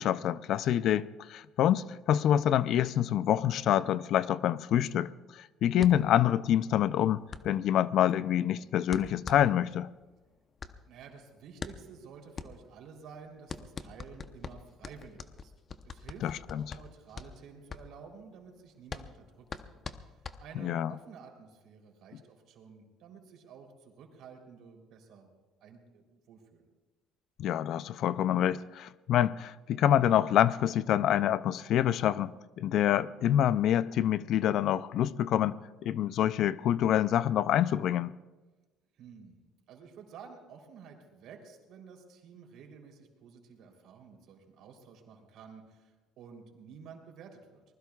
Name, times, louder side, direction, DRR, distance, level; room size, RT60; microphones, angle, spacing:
voice 1, 0.0-9.9 16.2-16.6 20.6-20.9 27.4-38.1, left 11 dB, 60° left, 0.4 m, -27 dB
sound 1, 5.8-20.9, left 5 dB, 35° left, 0.8 m, -45 dB
voice 2, 10.9-15.5 15.8-25.3 25.6-26.6 38.9-39.4 39.7-47.6, right 6 dB, 70° right, 3.4 m, -51 dB
23.5 x 20.5 x 2.4 m
cardioid pair, 115°, 0 cm